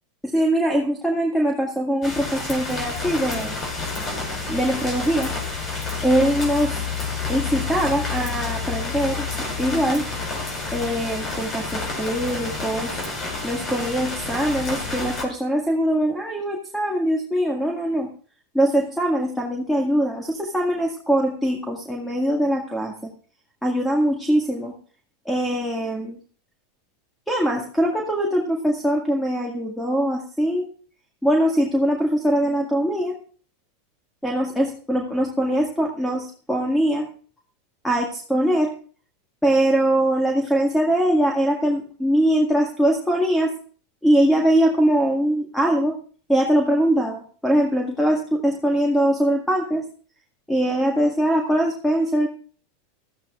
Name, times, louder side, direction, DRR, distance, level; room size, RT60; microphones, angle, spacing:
voice 1, 0.2-3.6 4.5-5.3 6.0-6.8 7.3-9.3 9.6-10.1 10.7-13.0 13.4-18.1 18.5-22.9 23.6-24.7 25.3-26.2 27.3-30.6 31.2-33.2 34.2-37.1 37.8-38.7 39.4-43.5 44.0-46.0 46.3-49.8 50.5-52.3, right 1 dB, 5° left, 0 dB, 1.9 m, -22 dB
sound 1, 2.0-15.2, left 4 dB, 30° left, 6.2 m, -29 dB
18.0 x 14.0 x 2.5 m, 0.43 s
hypercardioid pair, 115°, 0 cm